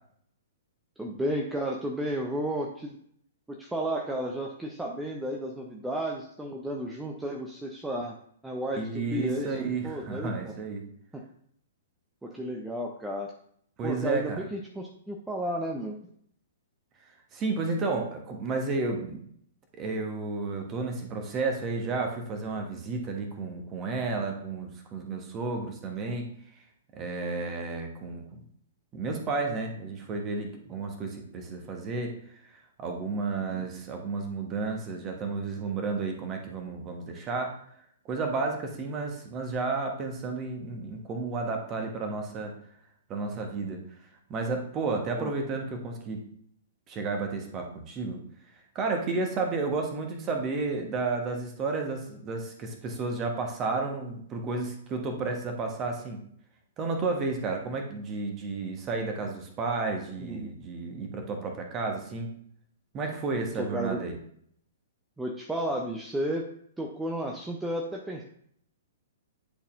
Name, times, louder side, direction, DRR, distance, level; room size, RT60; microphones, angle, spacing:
voice 1, 1.0-3.0 3.5-8.2 8.4-10.5 12.2-13.3 13.8-16.0 33.5-33.7 45.1-45.3 60.2-60.5 63.6-64.0 65.2-66.4 66.8-68.2, right 1 dB, 5° right, 0 dB, 0.6 m, -33 dB
voice 2, 8.8-10.8 13.8-14.4 17.3-19.2 19.8-26.3 26.9-28.2 28.9-32.1 32.8-37.6 38.0-42.5 43.1-43.8 44.3-46.3 46.9-48.2 48.7-56.2 56.8-62.3 62.9-64.2, right 3 dB, 25° right, 3 dB, 1.2 m, -32 dB
10.0 x 4.1 x 2.5 m, 0.66 s
figure-of-eight pair, 110°, 0 cm